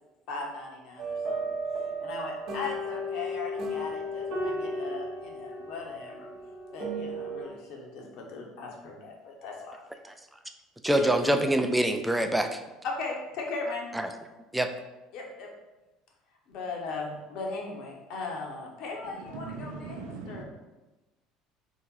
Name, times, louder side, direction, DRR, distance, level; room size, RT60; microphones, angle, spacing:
voice 1, 0.3-1.4 2.0-6.3 6.7-9.8 10.9-11.1 12.8-13.9 15.1-15.5 16.5-20.0 20.3-20.4, left 3 dB, 50° left, 0 dB, 0.9 m, -38 dB
sound 1, 1.0-7.4, equal, 50° right, 1.0 m, -34 dB
voice 2, 10.8-12.6 13.9-14.1 14.5-14.7, right 1 dB, 5° right, 6 dB, 0.4 m, -25 dB
voice 3, 19.4-20.4, right 4 dB, 65° right, 2 dB, 0.6 m, -39 dB
3.5 x 2.9 x 3.9 m, 1.1 s
figure-of-eight pair, 60°, 0 cm